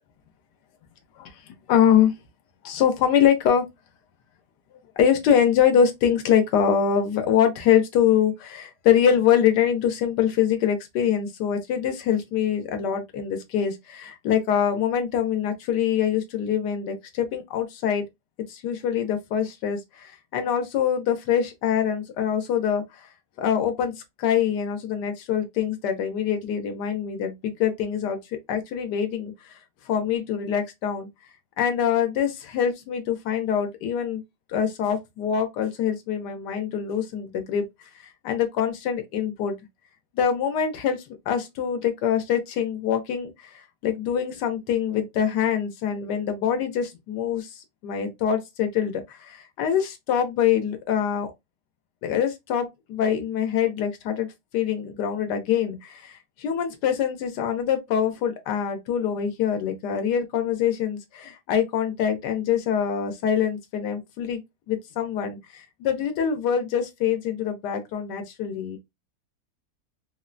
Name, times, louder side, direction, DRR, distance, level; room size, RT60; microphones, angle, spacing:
voice 1, 1.7-2.1 2.6-3.7 5.0-18.0 18.5-23.1 23.4-28.2 28.5-29.6 29.9-31.1 31.6-34.2 34.5-37.7 38.2-39.5 40.1-41.0 41.3-51.3 52.0-54.3 54.5-64.4 64.7-68.8, left 8 dB, 85° left, 1.3 m, -24 dB
3.5 x 2.0 x 2.5 m
omnidirectional pair, 1.8 m